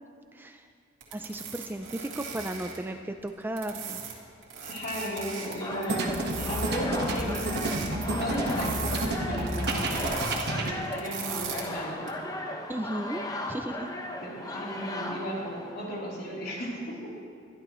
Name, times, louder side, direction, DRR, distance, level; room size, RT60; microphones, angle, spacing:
voice 1, 0.3-0.7 1.1-4.0 12.7-13.9, right 1 dB, 10° right, 6 dB, 0.4 m, -35 dB
sound 1, 1.0-2.8 3.3-4.1 4.4-5.5 5.8-6.7 7.0-7.9 8.3-9.1 9.4-10.4 10.8-11.6 12.1-12.2, right 7 dB, 85° right, 2.4 m, -38 dB
voice 2, 4.6-7.6 8.0-12.2 14.2-17.1, equal, 55° left, -5 dB, 3.3 m, -35 dB
sound 2, 5.6-16.1, left 1 dB, 20° left, 0.9 m, -37 dB
sound 3, 5.7-10.7, right 2 dB, 60° right, 1.4 m, -30 dB
23.0 x 11.5 x 3.1 m, 2.2 s
head